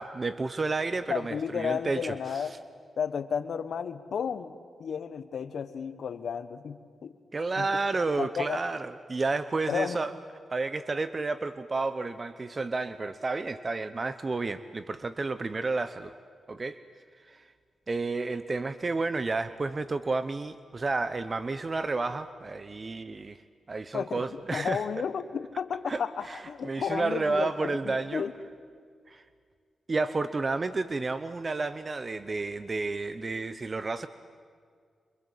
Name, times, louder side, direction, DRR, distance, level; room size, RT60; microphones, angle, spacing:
voice 1, 0.0-2.5 7.3-10.1 10.5-16.1 16.5-16.8 17.3-17.5 17.9-23.4 23.7-24.8 25.9-28.2 29.1-29.2 29.9-34.1, right 3 dB, 40° right, 12 dB, 0.9 m, -31 dB
voice 2, 1.1-2.5 3.0-4.5 4.8-7.1 7.6-7.7 8.2-8.6 9.7-10.0 23.9-28.3, left 7 dB, 75° left, 12 dB, 1.3 m, -32 dB
25.5 x 25.0 x 8.4 m, 2.1 s
cardioid pair, 65°, 0 cm